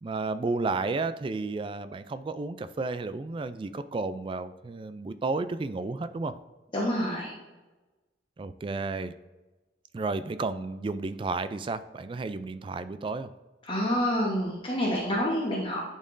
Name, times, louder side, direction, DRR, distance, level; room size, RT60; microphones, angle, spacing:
voice 1, 0.0-6.3 8.4-9.1 9.9-13.3, right 3 dB, 30° right, 12 dB, 0.3 m, -32 dB
voice 2, 6.7-7.3 13.7-15.8, equal, 30° left, -4 dB, 1.1 m, -27 dB
10.0 x 4.2 x 2.6 m, 1.1 s
head